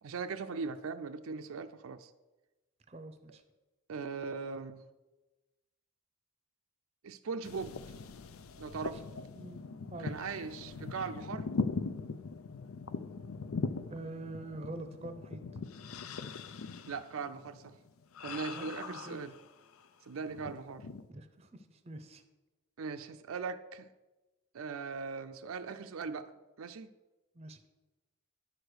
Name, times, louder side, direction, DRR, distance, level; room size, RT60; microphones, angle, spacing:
voice 1, 0.0-2.1 3.9-4.8 7.0-7.8 8.6-9.0 10.0-11.5 16.9-17.8 18.2-19.3 20.0-20.9 22.8-23.9 24.5-26.3 26.6-26.9, right 5 dB, 75° right, 9 dB, 0.5 m, -39 dB
voice 2, 2.9-3.4 9.3-9.6 9.9-10.1 13.9-15.4 18.5-19.2 21.1-22.2 27.3-27.6, right 2 dB, 30° right, 8 dB, 0.6 m, -45 dB
sound 1, 7.4-19.9 20.3-21.1, left 4 dB, 80° left, 0.5 m, -41 dB
10.0 x 4.9 x 6.2 m, 1.1 s
head